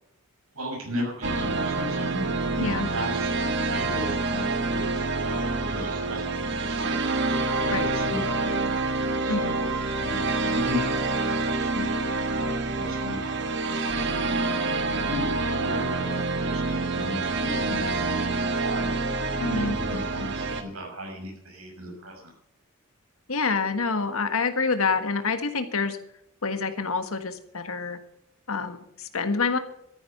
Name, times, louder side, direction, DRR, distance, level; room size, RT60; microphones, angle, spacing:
voice 1, 0.5-2.3 2.6-3.3 3.7-8.7 9.2-9.7 10.0-14.5 15.0-22.3, left 1 dB, 85° right, 1 dB, 6.0 m, -37 dB
sound 1, 1.2-20.6, right 3 dB, 55° right, 1.4 m, -27 dB
voice 2, 19.4-19.8 23.3-26.0 26.4-28.0 28.5-29.6, left 4 dB, 80° left, 8 dB, 1.5 m, -27 dB
13.0 x 10.5 x 6.7 m, 0.76 s
head